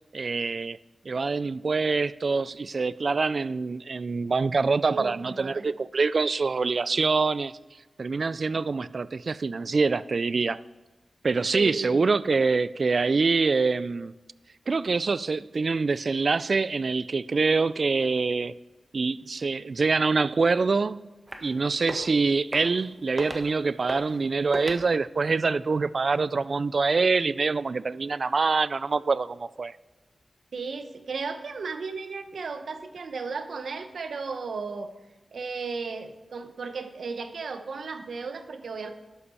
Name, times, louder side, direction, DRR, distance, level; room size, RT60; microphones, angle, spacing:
voice 1, 0.1-0.8 1.1-7.5 8.0-10.6 11.2-14.1 14.7-18.5 18.9-21.0 21.4-29.7, right 4 dB, 60° right, 0.4 m, -25 dB
voice 2, 4.9-5.6 11.5-12.1 30.5-34.9 35.3-38.9, right 4 dB, 85° right, 0.9 m, -35 dB
sound 1, 21.3-21.5 21.8-22.1 22.5-22.9 23.2-23.5 23.9-24.2 24.5-24.8, right 1 dB, 25° right, 1.5 m, -35 dB
12.5 x 11.5 x 4.3 m
wide cardioid pair, 70°, 0 cm